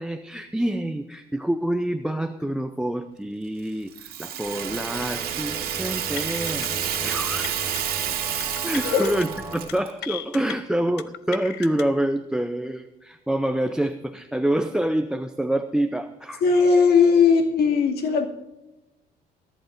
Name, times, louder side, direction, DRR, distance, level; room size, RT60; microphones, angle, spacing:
voice 1, 0.0-6.7 7.0-7.7 8.6-16.4, right 1 dB, 5° right, 9 dB, 0.6 m, -27 dB
Rattle (instrument), 3.9-9.9, right 10 dB, 65° right, 2.1 m, -30 dB
sound 1, 4.4-9.6, right 3 dB, 20° right, 5.5 m, -37 dB
sound 2, 6.2-6.7 6.9-7.2 7.4-7.8 8.4-9.3 9.5-9.7 10.0-10.5 11.0-11.8, left 12 dB, 85° left, 0.7 m, -36 dB
voice 2, 16.4-18.3, left 5 dB, 70° left, 1 dB, 2.4 m, -18 dB
24.5 x 11.0 x 2.7 m, 0.99 s
cardioid pair, 110°, 17 cm